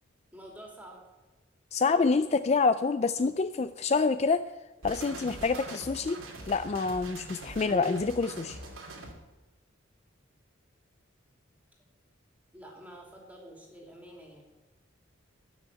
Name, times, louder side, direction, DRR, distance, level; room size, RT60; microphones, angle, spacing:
voice 1, 0.3-1.0 12.5-14.4, right 1 dB, 10° right, 0 dB, 2.8 m, -48 dB
voice 2, 1.7-4.4 4.8-6.2 6.5-8.6, left 4 dB, 35° left, 11 dB, 0.3 m, -27 dB
sound 1, 4.8-9.1, right 2 dB, 90° right, 2.6 m, -43 dB
12.5 x 6.3 x 8.4 m, 1.2 s
head